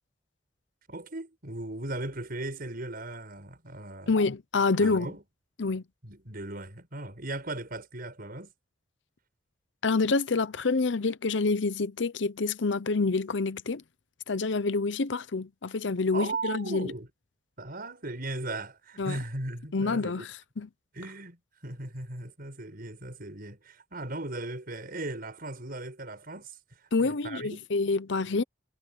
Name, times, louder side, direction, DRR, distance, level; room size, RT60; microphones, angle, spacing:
voice 1, 0.9-4.2 4.8-5.2 6.0-8.5 16.1-17.1 17.6-20.2 20.9-27.7, right 2 dB, 55° right, 6.1 m, -38 dB
voice 2, 4.1-5.1 5.6-5.8 9.8-13.8 14.3-16.9 19.0-19.2 19.7-20.7 26.9-28.4, left 3 dB, 75° left, 0.8 m, -27 dB
head